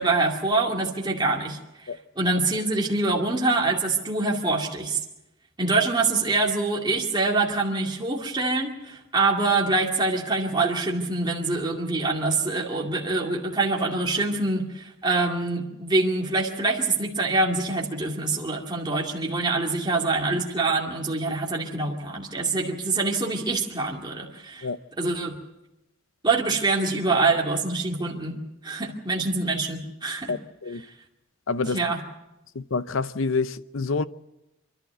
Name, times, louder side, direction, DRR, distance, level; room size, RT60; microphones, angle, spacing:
voice 1, 0.0-1.6 2.2-5.0 5.6-24.7 25.0-25.4 26.2-30.3 31.7-32.0, right 3 dB, 20° right, 2.3 m, -25 dB
voice 2, 30.3-30.8 31.5-31.8 32.5-34.0, left 4 dB, 70° left, 0.7 m, -27 dB
27.5 x 12.0 x 8.1 m
head